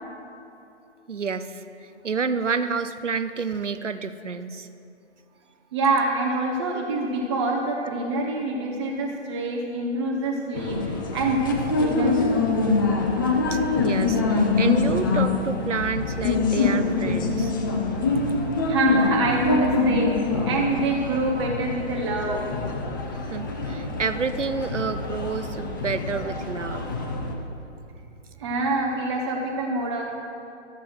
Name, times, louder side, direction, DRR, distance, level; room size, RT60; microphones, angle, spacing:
voice 1, 1.1-4.7 13.5-17.5 23.1-26.8, right 5 dB, 90° right, 11 dB, 0.6 m, -29 dB
voice 2, 5.7-12.3 18.7-22.4 28.4-30.0, right 2 dB, 25° right, -1 dB, 0.7 m, -25 dB
sound 1, 10.5-27.3, left 3 dB, 20° left, 0.6 m, -25 dB
13.0 x 8.2 x 4.5 m, 2.7 s
figure-of-eight pair, 135°, 35 cm